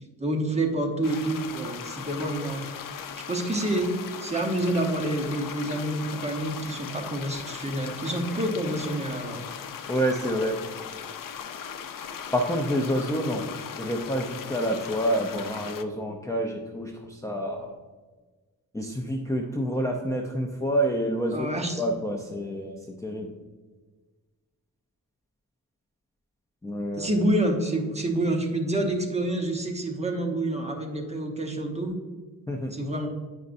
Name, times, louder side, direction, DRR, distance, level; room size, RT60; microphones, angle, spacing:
voice 1, 0.2-2.6 3.3-3.9 4.2-9.4 21.3-21.8 26.9-32.0 32.7-33.1, right 1 dB, 20° right, 2 dB, 1.0 m, -28 dB
sound 1, 1.0-15.8, left 7 dB, 75° left, 0.5 m, -38 dB
voice 2, 9.9-10.6 12.3-13.4 13.7-17.7 18.7-21.5 21.8-23.3 26.6-27.1 32.5-32.7, equal, 10° left, 0 dB, 0.5 m, -28 dB
9.3 x 5.4 x 2.6 m, 1.3 s
wide cardioid pair, 115°, 33 cm